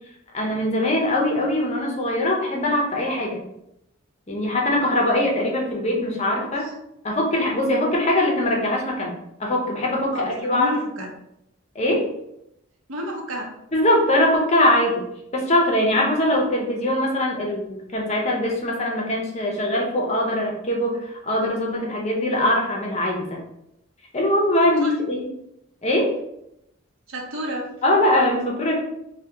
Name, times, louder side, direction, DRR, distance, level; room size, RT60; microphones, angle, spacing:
voice 1, 0.3-3.4 4.3-6.6 7.0-9.1 9.4-10.7 11.8-12.1 13.7-15.0 15.3-23.4 24.1-25.3 25.8-26.2 27.8-28.8, left 1 dB, 30° left, -1 dB, 0.6 m, -22 dB
voice 2, 10.1-11.1 12.9-13.5 24.8-24.9 27.1-27.7, equal, 85° right, 0 dB, 0.7 m, -31 dB
2.7 x 2.1 x 3.4 m, 0.82 s
head